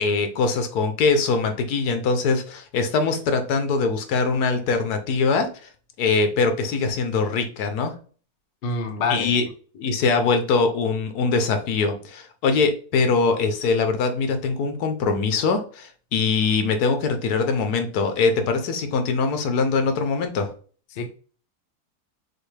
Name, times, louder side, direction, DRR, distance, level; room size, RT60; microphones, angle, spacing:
voice 1, 0.0-5.5 6.0-7.9 9.1-9.4 9.7-20.5, left 4 dB, 75° left, 7 dB, 1.2 m, -22 dB
voice 2, 8.6-9.3 20.9-21.1, left 4 dB, 55° left, 5 dB, 0.6 m, -26 dB
6.3 x 2.4 x 3.2 m, 0.41 s
omnidirectional pair, 1.7 m